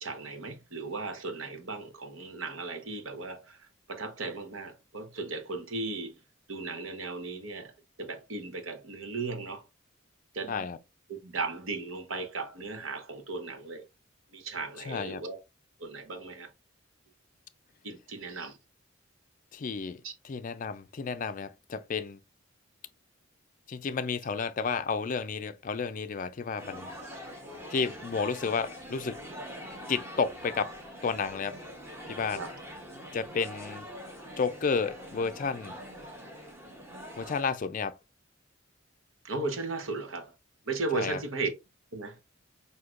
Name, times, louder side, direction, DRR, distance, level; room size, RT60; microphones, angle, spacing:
voice 1, 0.0-6.2 6.5-9.6 10.3-10.6 11.1-13.8 14.3-15.4 15.8-16.5 17.8-18.6 20.0-20.1 32.4-32.6 39.2-40.3 40.7-41.5 41.9-42.2, right 3 dB, 90° right, 1.0 m, -36 dB
voice 2, 14.9-15.2 19.5-22.2 23.7-26.9 27.7-29.2 29.9-30.7 31.0-31.5 32.1-32.4 33.1-33.9 34.4-35.7 37.2-38.0 40.9-41.2, left 5 dB, 40° left, 0.4 m, -31 dB
sound 1, 26.6-37.4, equal, 15° right, 0.9 m, -44 dB
6.1 x 2.8 x 2.4 m
head